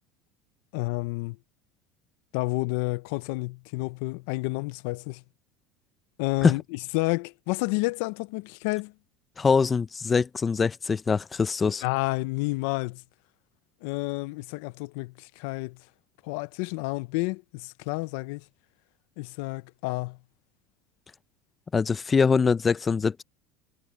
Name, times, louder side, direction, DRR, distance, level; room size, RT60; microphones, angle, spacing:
voice 1, 0.7-1.4 2.3-5.2 6.2-8.9 11.7-13.0 13.8-15.8 16.2-18.4 19.2-20.2, left 23 dB, 75° left, 0.7 m, -30 dB
voice 2, 9.4-11.8 21.7-23.2, left 5 dB, 25° left, 0.6 m, -23 dB
supercardioid pair, 95°, 0 cm